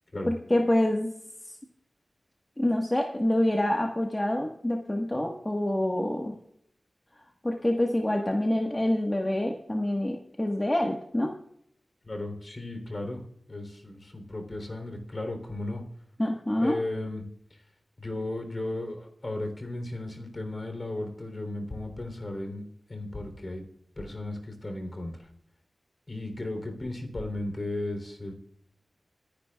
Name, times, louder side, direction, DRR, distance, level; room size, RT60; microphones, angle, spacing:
voice 1, 0.3-1.1 2.6-6.3 7.4-11.3 16.2-16.8, left 1 dB, 20° left, 1 dB, 1.5 m, -26 dB
voice 2, 12.0-13.2 13.5-15.8 16.6-17.2 18.0-23.6 24.0-25.3 26.1-28.3, left 2 dB, 45° left, 5 dB, 3.5 m, -35 dB
26.5 x 10.0 x 2.4 m, 0.68 s
cardioid pair, 50°, 0 cm